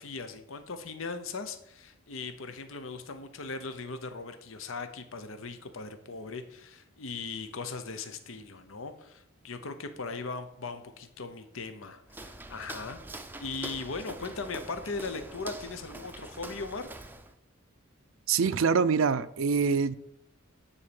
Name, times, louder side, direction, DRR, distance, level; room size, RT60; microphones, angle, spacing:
voice 1, 0.0-16.9, left 4 dB, 70° left, 9 dB, 0.9 m, -39 dB
Walk footsteps, 12.1-17.4, right 2 dB, 10° right, 0.5 m, -44 dB
voice 2, 18.3-19.9, right 5 dB, 70° right, 13 dB, 0.5 m, -25 dB
9.9 x 4.2 x 6.9 m, 0.76 s
head